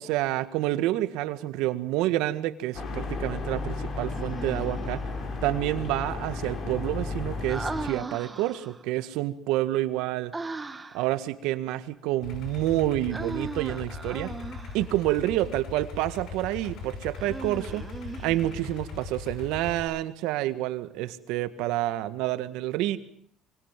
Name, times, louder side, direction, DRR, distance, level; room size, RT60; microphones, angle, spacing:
voice 1, 0.0-5.0 5.4-10.3 10.9-14.3 14.7-17.9 18.2-23.0, right 15 dB, 80° right, 12 dB, 1.8 m, -28 dB
sound 1, 2.7-7.9, left 3 dB, 45° left, 4.7 m, -33 dB
Human voice, 4.1-5.0 7.5-8.8 10.3-11.1 13.1-14.9 17.1-18.8, right 3 dB, 15° right, 1.8 m, -38 dB
Idling, 12.2-19.8, left 5 dB, 65° left, 5.9 m, -40 dB
25.0 x 23.5 x 7.6 m, 0.63 s
cardioid pair, 115°, 0 cm